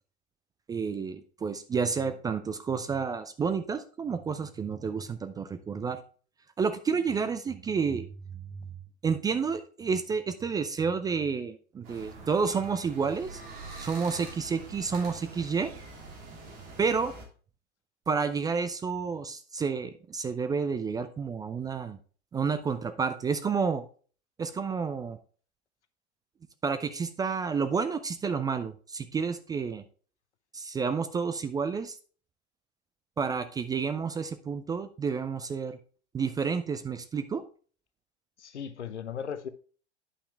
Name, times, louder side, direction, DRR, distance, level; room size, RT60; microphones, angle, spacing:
voice 1, 0.7-6.0 6.6-8.1 9.0-13.4 13.8-15.7 16.8-17.1 18.1-22.0 22.3-23.8 24.4-25.2 26.6-29.8 30.5-32.0 33.2-35.8 36.1-37.4, right 5 dB, 10° right, 0.4 m, -30 dB
sound 1, 11.8-17.2, right 3 dB, 60° right, 2.9 m, -45 dB
voice 2, 38.4-39.5, left 7 dB, 80° left, 0.9 m, -37 dB
9.7 x 5.7 x 3.2 m
figure-of-eight pair, 90°, 34 cm